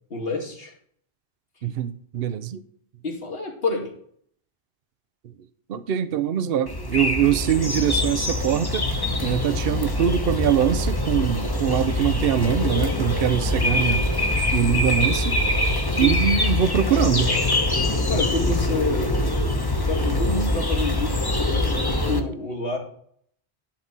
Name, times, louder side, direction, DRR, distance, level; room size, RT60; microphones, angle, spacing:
voice 1, 0.1-0.7 3.0-3.9 16.0-16.3 18.1-19.1 19.9-22.8, left 3 dB, 65° left, 2.6 m, -28 dB
voice 2, 1.6-2.6 5.7-8.9 9.2-14.2 14.5-15.4 16.0-17.3, right 10 dB, 65° right, 0.9 m, -23 dB
sound 1, 6.7-22.2, left 2 dB, 20° left, 1.1 m, -24 dB
11.5 x 4.0 x 7.4 m
omnidirectional pair, 1.1 m